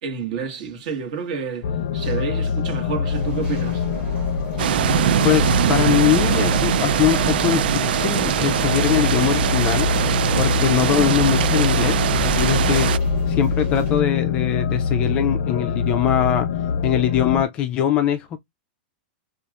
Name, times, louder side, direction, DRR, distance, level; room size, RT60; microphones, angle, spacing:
voice 1, 0.0-3.8, right 6 dB, 45° right, 1.5 m, -29 dB
sound 1, 1.6-17.4, left 5 dB, 90° left, 0.5 m, -24 dB
sound 2, 3.1-14.0, right 5 dB, 25° right, 2.4 m, -34 dB
sound 3, 4.6-13.0, right 11 dB, 75° right, 0.3 m, -22 dB
voice 2, 5.2-9.9 10.4-12.9 13.3-16.5 16.8-18.4, left 10 dB, 20° left, 0.3 m, -22 dB
5.3 x 2.4 x 2.4 m
supercardioid pair, 175°, 5 cm